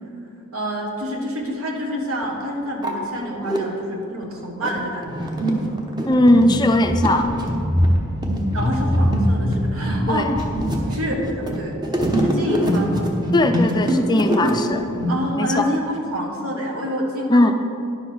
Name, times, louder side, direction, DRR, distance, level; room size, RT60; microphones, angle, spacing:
voice 1, 0.5-5.8 8.5-10.3 10.9-11.8 12.2-13.1 15.1-17.5, equal, 75° right, 1 dB, 1.4 m, -27 dB
sound 1, 1.4-1.5 2.2-2.3 2.6-3.6 4.2-15.1, equal, 20° right, 0.9 m, -22 dB
voice 2, 6.1-7.3 10.1-10.2 13.3-14.9 15.4-15.7 17.3-17.5, left 1 dB, 20° left, 6 dB, 0.4 m, -18 dB
10.5 x 5.2 x 6.2 m, 2.6 s
head